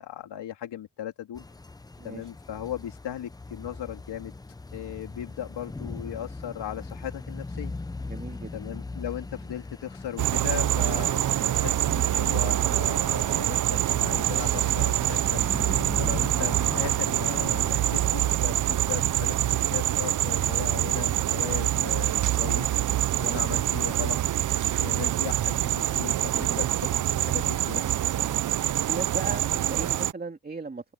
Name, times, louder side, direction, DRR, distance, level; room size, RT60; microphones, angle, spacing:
voice 1, 0.0-1.4 2.0-4.3 4.7-7.7 8.5-15.4 16.0-22.7 23.2-24.2 24.8-26.6 27.2-27.8, left 11 dB, 65° left, 3.5 m, -37 dB
sound 1, 1.4-18.4, left 3 dB, 10° left, 0.5 m, -40 dB
voice 2, 2.0-2.3 8.1-8.5 24.9-25.2 26.3-26.6 28.1-28.5 28.8-30.9, right 3 dB, 20° right, 2.5 m, -38 dB
sound 2, 10.2-30.1, right 12 dB, 45° right, 0.6 m, -25 dB
open air
cardioid pair, 130°, 44 cm